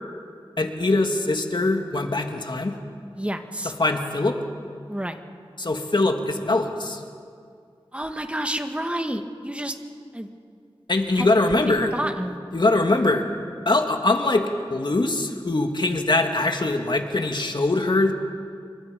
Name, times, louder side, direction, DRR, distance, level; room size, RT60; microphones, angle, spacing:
voice 1, 0.6-2.8 3.8-4.4 5.6-7.0 10.9-11.9 12.5-13.2 13.7-18.1, left 2 dB, 55° left, 4 dB, 2.3 m, -22 dB
voice 2, 3.1-3.7 4.9-5.2 7.9-9.7 10.1-10.3 11.2-11.3 11.5-12.4, right 1 dB, 15° right, 6 dB, 1.8 m, -29 dB
27.5 x 24.0 x 5.3 m, 2.2 s
wide cardioid pair, 55°, 9 cm